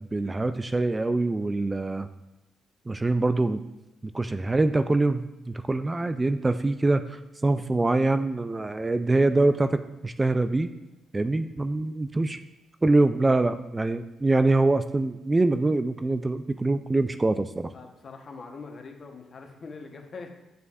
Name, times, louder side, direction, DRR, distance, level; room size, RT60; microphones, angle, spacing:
voice 1, 0.0-2.1 2.9-3.6 4.0-10.7 11.1-12.4 12.8-17.7, right 2 dB, 20° right, 10 dB, 0.3 m, -24 dB
voice 2, 17.7-20.3, left 4 dB, 50° left, 3 dB, 1.0 m, -42 dB
6.8 x 6.6 x 2.4 m, 0.99 s
supercardioid pair, 70°, 0 cm